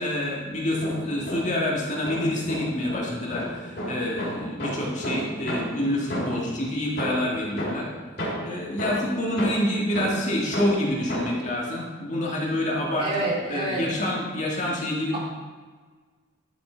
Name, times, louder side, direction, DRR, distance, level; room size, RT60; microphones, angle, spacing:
voice 1, 0.0-7.9 8.4-13.1 13.5-15.2, left 1 dB, 40° left, -3 dB, 1.7 m, -27 dB
sound 1, 0.6-1.7 2.1-6.6 7.0-11.5, equal, 55° left, 3.1 m, -33 dB
voice 2, 13.0-13.8 15.1-15.2, right 2 dB, 30° right, -5 dB, 2.6 m, -28 dB
11.5 x 5.9 x 4.4 m, 1.4 s
head